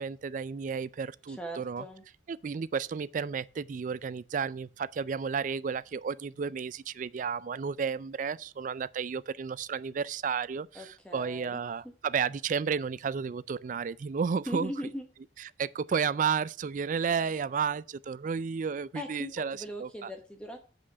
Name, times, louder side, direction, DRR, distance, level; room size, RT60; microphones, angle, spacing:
voice 1, 0.0-1.8 2.3-14.7 15.4-20.1, right 6 dB, 45° right, 0.3 m, -32 dB
voice 2, 1.3-2.0 10.7-11.6 14.5-15.0 18.9-20.6, equal, 5° left, 0.9 m, -39 dB
8.4 x 5.1 x 5.5 m
head